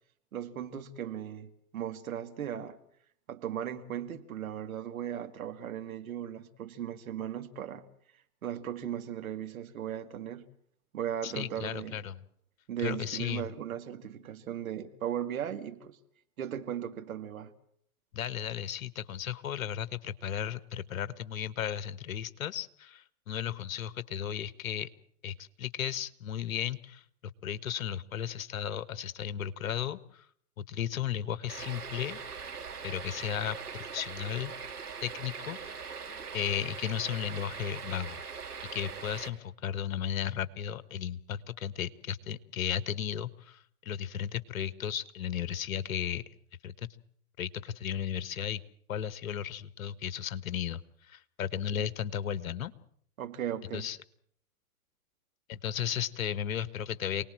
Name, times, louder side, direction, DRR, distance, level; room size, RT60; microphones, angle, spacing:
voice 1, 0.3-2.8 3.3-7.8 8.4-10.5 10.9-12.0 12.7-16.0 16.4-17.5 51.7-51.9 53.2-53.9, right 10 dB, 65° right, 2.3 m, -37 dB
voice 2, 11.2-12.2 12.8-13.5 18.1-24.9 25.2-30.3 30.6-32.2 32.8-34.5 35.0-35.9 36.3-38.2 38.7-46.2 46.6-46.9 47.4-48.6 48.9-50.8 51.1-52.7 53.7-54.0 55.5-57.2, left 9 dB, 60° left, 1.5 m, -35 dB
sound 1, 31.5-39.3, right 5 dB, 80° right, 3.3 m, -41 dB
28.5 x 19.5 x 7.6 m
hypercardioid pair, 115°, 45 cm